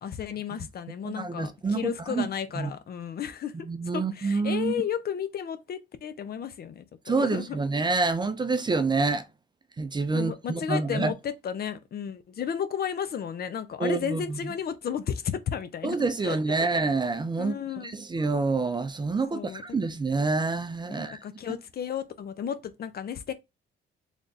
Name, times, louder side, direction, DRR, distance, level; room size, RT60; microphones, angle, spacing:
voice 1, 0.0-3.5 3.9-7.6 10.1-16.0 16.2-16.4 17.4-17.9 19.3-19.6 20.9-23.3, left 8 dB, 50° left, 0.6 m, -33 dB
voice 2, 1.0-2.3 2.5-2.7 3.6-4.8 7.1-9.3 9.8-11.1 13.8-14.4 15.8-21.2, right 3 dB, 20° right, 0.4 m, -27 dB
3.4 x 2.5 x 4.0 m
cardioid pair, 90°, 20 cm